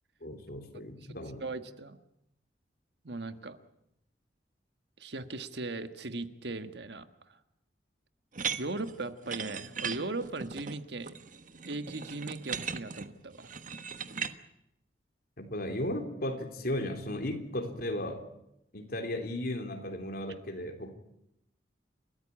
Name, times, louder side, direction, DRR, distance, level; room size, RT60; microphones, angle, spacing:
voice 1, 0.2-1.5 15.4-18.2 18.7-20.9, left 1 dB, 60° left, 4 dB, 3.6 m, -35 dB
voice 2, 1.4-2.0 3.0-3.6 5.0-7.4 8.6-11.1 11.7-13.5, right 2 dB, 70° right, 10 dB, 1.4 m, -38 dB
sound 1, 8.3-14.3, right 6 dB, 50° right, 1.3 m, -38 dB
30.0 x 14.0 x 9.9 m, 0.83 s
head